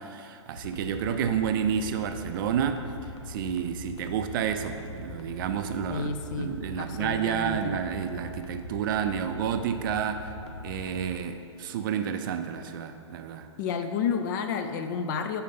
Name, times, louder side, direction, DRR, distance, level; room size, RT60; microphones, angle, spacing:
voice 1, 0.0-2.9 3.3-10.3 10.6-13.5, right 8 dB, 45° right, 8 dB, 0.4 m, -30 dB
sound 1, 0.5-11.1, left 2 dB, 60° left, 0.9 m, -41 dB
voice 2, 5.9-7.7 13.6-15.4, left 6 dB, 40° left, 8 dB, 0.4 m, -31 dB
5.1 x 4.3 x 5.3 m, 2.5 s
hypercardioid pair, 120°, 16 cm